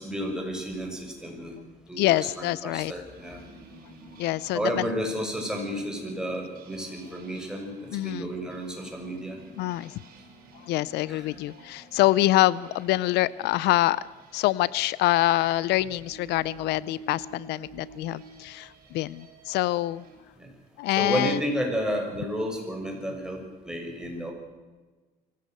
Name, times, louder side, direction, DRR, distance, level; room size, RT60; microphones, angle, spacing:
voice 1, 0.0-1.5 1.9-3.4 4.5-9.4 11.1-11.3 20.4-20.5 20.9-24.3, equal, 5° right, 1 dB, 6.4 m, -31 dB
voice 2, 2.0-2.9 4.2-4.6 7.9-8.3 9.6-9.9 10.7-14.0 14.3-20.0 20.8-21.4, left 16 dB, 85° left, 21 dB, 0.6 m, -25 dB
sound 1, 3.1-20.2, right 3 dB, 60° right, 5.6 m, -51 dB
23.5 x 16.0 x 7.8 m, 1.3 s
cardioid pair, 110°, 17 cm